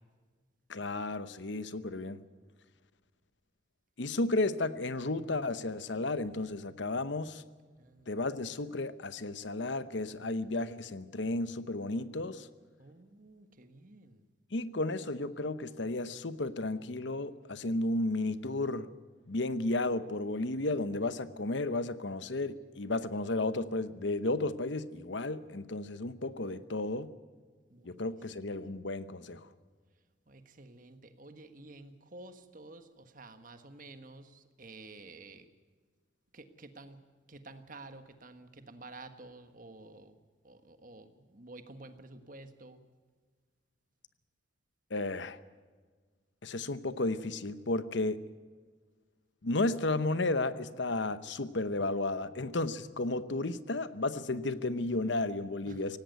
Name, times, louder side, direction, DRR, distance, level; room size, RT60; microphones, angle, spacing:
voice 1, 0.7-2.2 4.0-7.4 8.1-12.5 14.5-18.9 19.3-27.1 27.8-29.5 44.9-45.4 46.4-48.2 49.4-56.0, left 2 dB, 65° left, 14 dB, 0.9 m, -33 dB
voice 2, 7.8-8.3 12.8-14.3 27.7-28.4 30.3-35.4 36.3-37.0 37.3-40.2 40.4-42.8 55.7-56.0, right 2 dB, 45° right, 9 dB, 1.5 m, -51 dB
17.5 x 17.5 x 9.3 m, 1.5 s
head